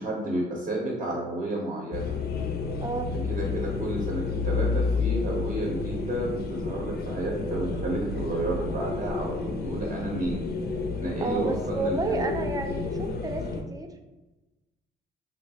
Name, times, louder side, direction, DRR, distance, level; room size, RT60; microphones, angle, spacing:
voice 1, 0.0-2.1 3.3-10.5 11.0-12.3, right 1 dB, 40° right, -2 dB, 0.7 m, -31 dB
sound 1, 1.9-13.6, left 4 dB, 55° left, 0.5 m, -31 dB
voice 2, 2.8-3.1 11.2-13.9, right 3 dB, 20° right, 6 dB, 0.3 m, -31 dB
3.3 x 2.3 x 2.8 m, 1.1 s
cardioid pair, 90°, 20 cm